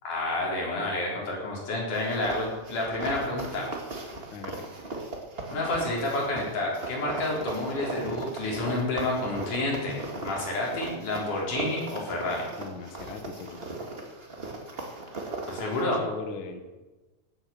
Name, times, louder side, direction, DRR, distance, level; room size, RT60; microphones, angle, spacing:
voice 1, 0.0-3.7 5.5-12.4 15.4-16.0, left 2 dB, 85° left, -2 dB, 5.6 m, -29 dB
sound 1, 1.9-15.8, right 2 dB, 25° right, 1.5 m, -37 dB
voice 2, 4.3-4.6 12.6-13.6 15.7-16.6, left 5 dB, 55° left, 7 dB, 1.7 m, -39 dB
18.0 x 8.8 x 7.1 m, 1.2 s
omnidirectional pair, 3.5 m